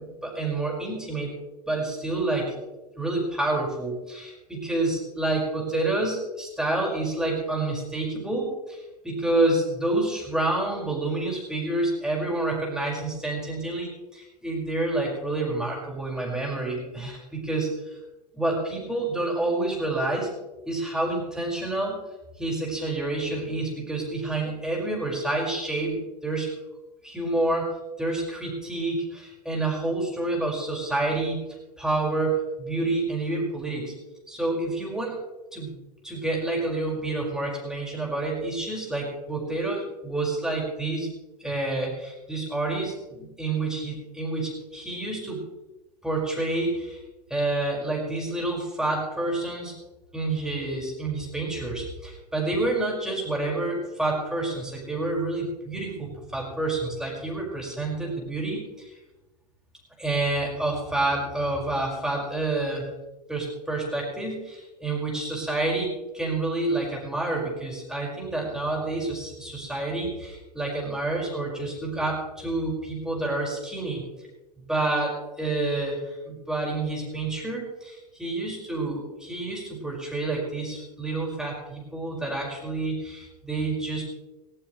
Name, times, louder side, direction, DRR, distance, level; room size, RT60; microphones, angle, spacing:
voice 1, 0.2-1.3 1.7-2.6 2.9-17.7 18.3-20.3 20.7-22.0 22.4-26.5 27.0-27.7 28.0-31.4 31.8-33.9 34.3-35.2 35.5-35.7 36.0-41.1 41.4-45.4 46.0-47.0 47.3-49.7 50.1-58.9 60.0-62.9 63.3-74.0 74.6-84.0, right 2 dB, 5° right, -2 dB, 5.6 m, -28 dB
19.0 x 15.5 x 3.3 m, 1.0 s
figure-of-eight pair, 95°, 21 cm